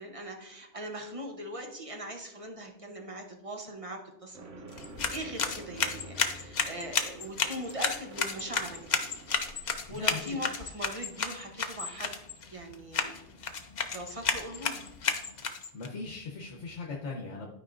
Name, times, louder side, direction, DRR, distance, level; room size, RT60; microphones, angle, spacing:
voice 1, 0.0-4.7 5.1-9.0 9.9-12.1 12.5-13.1 13.9-14.8, equal, 30° right, 3 dB, 0.8 m, -40 dB
sound 1, 4.3-10.4, right 2 dB, 85° right, 1.2 m, -49 dB
sound 2, 4.7-15.9, left 5 dB, 45° left, 0.7 m, -33 dB
voice 2, 9.9-10.4 15.7-17.5, left 3 dB, 75° left, -2 dB, 1.3 m, -39 dB
12.0 x 4.9 x 2.5 m, 0.85 s
omnidirectional pair, 1.2 m